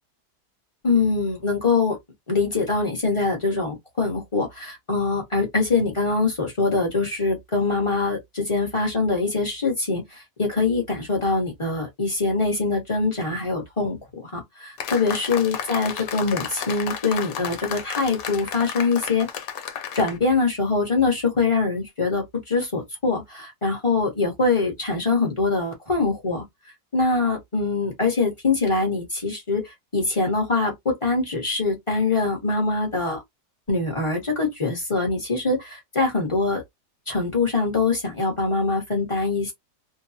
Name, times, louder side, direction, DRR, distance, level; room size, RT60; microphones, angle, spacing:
voice 1, 0.8-2.0 2.3-19.3 19.9-26.4 26.9-33.2 33.7-36.6 37.1-39.5, left 3 dB, 25° left, 0.7 m, -23 dB
sound 1, 14.8-20.2, left 8 dB, 80° left, 1.2 m, -33 dB
2.7 x 2.2 x 2.6 m
omnidirectional pair, 1.9 m